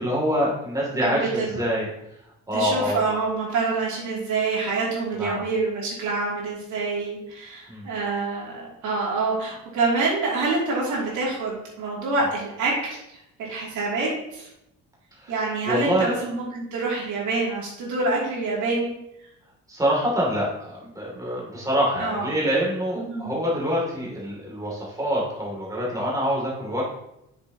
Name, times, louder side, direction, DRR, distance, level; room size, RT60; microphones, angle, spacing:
voice 1, 0.0-1.9 2.5-3.0 5.2-5.4 7.7-7.9 15.2-15.3 15.7-16.1 19.7-26.9, equal, 10° right, -5 dB, 2.7 m, -25 dB
voice 2, 0.9-1.6 2.5-13.0 13.4-14.5 15.3-18.9 22.0-22.3 23.0-23.3, right 3 dB, 75° right, -4 dB, 2.9 m, -26 dB
7.9 x 6.8 x 2.9 m, 0.83 s
cardioid pair, 135°, 30 cm